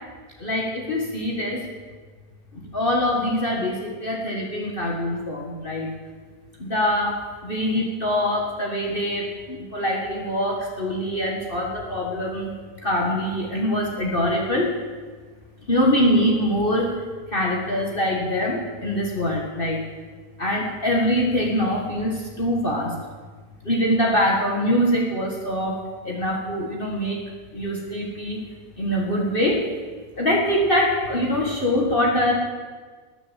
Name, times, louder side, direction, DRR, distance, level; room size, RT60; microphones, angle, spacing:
voice 1, 0.4-1.6 2.5-5.9 6.6-12.5 12.8-14.7 15.7-17.0 17.3-19.8 20.4-23.0 23.6-27.2 27.5-28.4 28.8-29.6 30.2-32.3, equal, 35° left, -2 dB, 1.9 m, -24 dB
19.5 x 7.2 x 7.5 m, 1.5 s
omnidirectional pair, 1.7 m